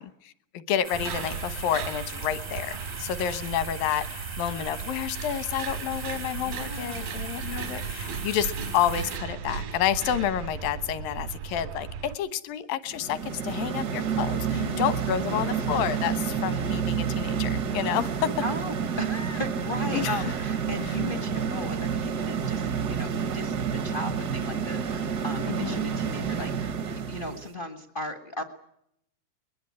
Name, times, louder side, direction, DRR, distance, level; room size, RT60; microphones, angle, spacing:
voice 1, 0.0-18.3 19.9-20.2 25.5-25.8, left 10 dB, 85° left, 14 dB, 2.9 m, -29 dB
sound 1, 0.8-9.2, right 3 dB, 50° right, 0.4 m, -40 dB
sound 2, 0.9-12.2, right 7 dB, 85° right, 3.8 m, -36 dB
voice 2, 6.3-7.2 14.5-15.6 18.4-28.4, left 1 dB, 70° left, 7 dB, 0.5 m, -37 dB
sound 3, 12.9-27.4, right 7 dB, 65° right, 0.9 m, -29 dB
23.0 x 21.0 x 9.7 m, 0.74 s
omnidirectional pair, 3.9 m